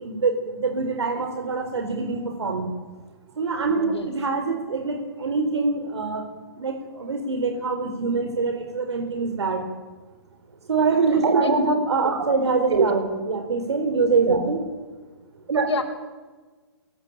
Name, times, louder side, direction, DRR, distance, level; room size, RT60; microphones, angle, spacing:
voice 1, 0.0-2.7 3.4-6.3 6.5-9.7 10.6-14.6 15.5-15.7, right 4 dB, 85° right, 4 dB, 4.5 m, -24 dB
voice 2, 11.4-11.8 12.9-13.0 14.4-14.5 15.7-15.8, left 5 dB, 85° left, -1 dB, 4.6 m, -29 dB
24.5 x 21.5 x 8.8 m, 1.3 s
hypercardioid pair, 175°, 14 cm